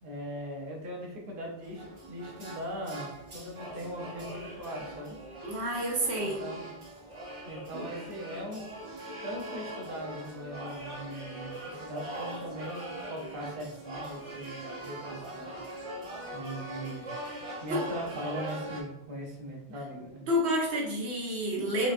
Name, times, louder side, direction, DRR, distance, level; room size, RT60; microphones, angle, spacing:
voice 1, 0.0-5.2 6.2-6.6 7.5-8.7 9.2-15.6 16.3-17.0 17.6-20.2, equal, 55° right, -2 dB, 1.0 m, -40 dB
sound 1, 1.6-18.8, right 1 dB, 35° right, 0.7 m, -41 dB
voice 2, 5.4-6.4 7.7-7.8 17.7-17.8 20.3-21.9, equal, 85° right, -2 dB, 1.1 m, -29 dB
5.0 x 2.4 x 2.5 m, 0.85 s
omnidirectional pair, 1.1 m